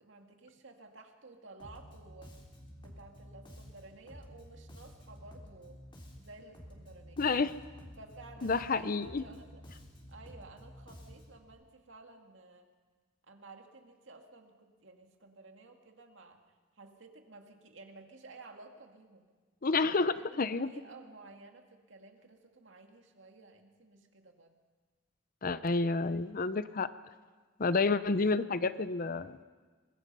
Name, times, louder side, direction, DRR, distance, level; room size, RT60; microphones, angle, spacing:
voice 1, 0.0-2.3 2.8-5.8 6.2-7.2 8.0-9.6 10.1-12.7 13.3-16.4 16.8-19.2 19.7-24.5, right 3 dB, 75° right, 3 dB, 2.2 m, -54 dB
Bass guitar, 1.6-11.5, equal, 25° left, 3.5 m, -52 dB
voice 2, 7.2-7.5 8.4-9.2 19.6-20.7 25.4-26.9 27.6-29.4, left 3 dB, 45° left, 14 dB, 0.7 m, -30 dB
24.0 x 21.0 x 5.6 m, 1.5 s
head